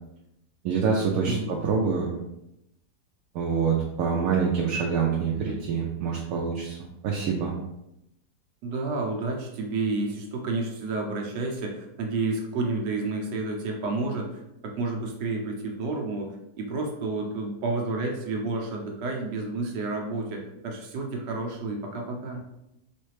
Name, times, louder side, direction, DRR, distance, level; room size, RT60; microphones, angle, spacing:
voice 1, 0.6-2.2 3.3-6.8 7.0-7.5, right 6 dB, 70° right, -2 dB, 0.9 m, -26 dB
voice 2, 8.6-22.4, right 3 dB, 85° right, 1 dB, 1.4 m, -30 dB
3.3 x 3.2 x 3.2 m, 0.83 s
omnidirectional pair, 1.8 m